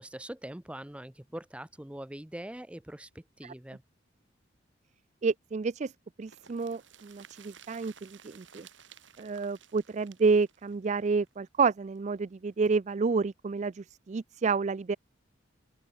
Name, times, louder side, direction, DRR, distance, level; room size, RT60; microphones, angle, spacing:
voice 1, 0.0-3.8, right 1 dB, 5° right, 0.7 m, -43 dB
voice 2, 5.2-5.9 6.2-8.7 9.2-15.0, right 4 dB, 40° right, 0.4 m, -29 dB
sound 1, 6.2-12.0 12.3-12.4 12.6-12.7, right 8 dB, 75° right, 2.8 m, -55 dB
head